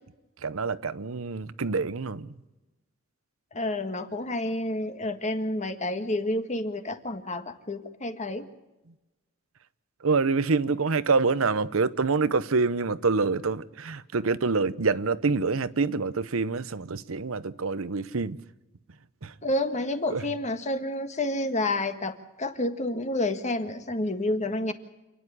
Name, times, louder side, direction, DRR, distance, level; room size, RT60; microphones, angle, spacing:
voice 1, 0.4-2.4 10.0-18.4 19.2-19.3 20.1-20.2, right 4 dB, 90° right, 0.8 m, -26 dB
voice 2, 3.5-8.4 19.4-24.7, left 1 dB, 35° left, 1.6 m, -29 dB
28.0 x 10.0 x 9.7 m
head